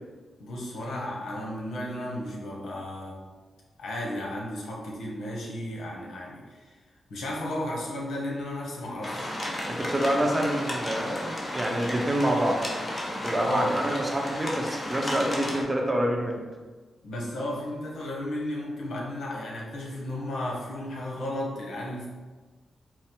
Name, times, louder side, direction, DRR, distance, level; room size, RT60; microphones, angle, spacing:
voice 1, 0.4-3.2 3.8-6.8 7.1-9.4 13.4-13.7 17.0-22.1, left 1 dB, 85° left, -3 dB, 1.0 m, -34 dB
sound 1, 9.0-15.6, left 1 dB, 25° left, 0.8 m, -33 dB
voice 2, 9.7-12.6 13.2-16.4, right 1 dB, 20° right, 1 dB, 0.6 m, -27 dB
4.5 x 2.0 x 4.3 m, 1.3 s
cardioid pair, 100°, 0 cm